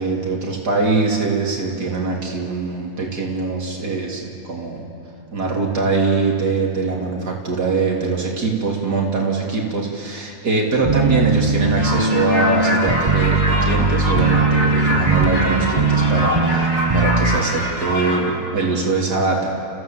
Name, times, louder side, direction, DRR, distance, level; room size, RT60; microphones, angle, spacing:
voice 1, 0.0-4.9 5.3-19.6, right 3 dB, 85° right, -1 dB, 3.8 m, -22 dB
sound 1, 10.8-17.4, right 3 dB, 25° right, 1.0 m, -19 dB
sound 2, 11.7-18.2, equal, 70° left, 6.5 m, -24 dB
29.5 x 16.0 x 7.7 m, 2.6 s
omnidirectional pair, 1.7 m